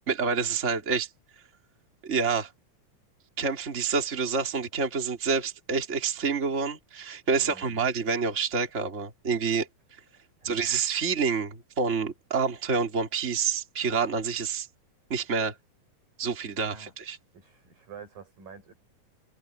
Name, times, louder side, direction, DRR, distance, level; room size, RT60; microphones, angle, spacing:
voice 1, 0.1-1.1 2.0-2.5 3.4-9.7 10.4-14.7 15.1-15.5 16.2-17.2, right 5 dB, 20° right, 3.1 m, -28 dB
voice 2, 7.4-7.8 10.4-10.7 16.3-16.9 17.3-18.7, right 6 dB, 85° right, 9.0 m, -48 dB
omnidirectional pair, 3.9 m